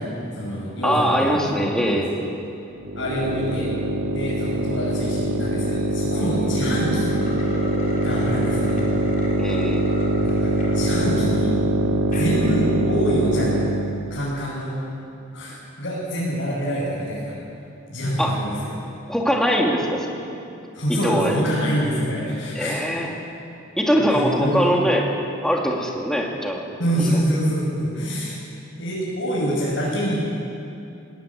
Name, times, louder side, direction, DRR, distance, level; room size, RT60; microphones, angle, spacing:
voice 1, 0.0-2.0 3.0-3.7 4.1-7.1 8.0-8.9 10.2-11.5 12.0-13.6 14.1-14.7 15.3-17.3 17.9-18.8 20.7-22.8 24.0-24.7 26.8-28.4 28.8-30.2, equal, 65° left, -8 dB, 7.2 m, -26 dB
voice 2, 0.8-2.1 9.4-9.8 18.2-18.3 19.1-20.2 21.0-21.4 22.5-23.1 23.8-25.0 25.4-26.7 27.0-27.2, equal, 5° left, -1 dB, 2.5 m, -22 dB
sound 1, 2.7-14.0, right 2 dB, 90° right, 1.9 m, -23 dB
sound 2, 7.0-10.9 11.4-11.5 12.0-12.3, equal, 45° left, 4.6 m, -36 dB
20.0 x 18.5 x 9.1 m, 2.7 s
head